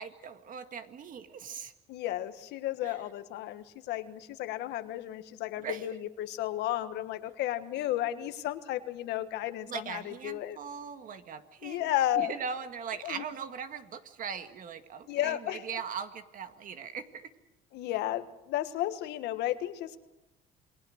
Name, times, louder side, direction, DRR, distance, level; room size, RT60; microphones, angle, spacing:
voice 1, 0.0-1.7 2.8-3.0 5.6-5.9 9.7-11.9 12.2-17.3, right 6 dB, 55° right, 9 dB, 1.9 m, -40 dB
voice 2, 1.9-10.6 11.6-12.3 13.0-13.2 15.1-15.6 17.7-20.0, left 13 dB, 85° left, 11 dB, 1.5 m, -33 dB
28.0 x 21.0 x 6.5 m, 0.97 s
cardioid pair, 110°, 17 cm